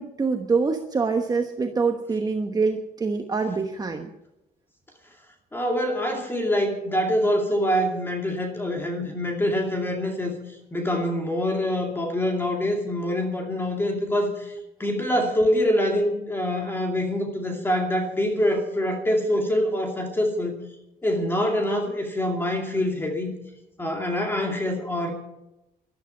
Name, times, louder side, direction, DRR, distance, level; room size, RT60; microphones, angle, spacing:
voice 1, 0.0-4.1, right 4 dB, 25° right, 4 dB, 1.1 m, -25 dB
voice 2, 5.5-10.4 10.7-14.5 14.8-20.5 21.0-23.3 23.8-25.1, equal, 15° left, 3 dB, 2.4 m, -25 dB
12.5 x 12.5 x 7.6 m, 0.91 s
cardioid pair, 140°, 16 cm